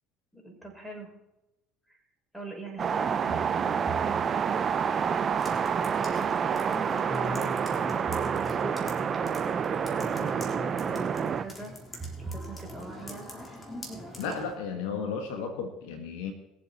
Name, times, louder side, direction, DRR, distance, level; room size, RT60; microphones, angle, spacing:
voice 1, 0.3-1.1 1.9-2.0 2.3-4.5 6.1-13.3 14.3-14.5, right 2 dB, 5° left, 1 dB, 5.9 m, -44 dB
sound 1, 0.6-0.7 3.3-4.9 8.1-9.1 12.0-13.3, right 5 dB, 15° right, 1.9 m, -42 dB
sound 2, 2.8-11.4, right 7 dB, 40° right, 0.8 m, -28 dB
sound 3, 5.4-14.6, left 1 dB, 20° left, 3.9 m, -41 dB
voice 2, 14.2-16.3, left 6 dB, 75° left, 6 dB, 1.7 m, -34 dB
22.0 x 7.8 x 4.3 m, 0.94 s
hypercardioid pair, 75°, 0 cm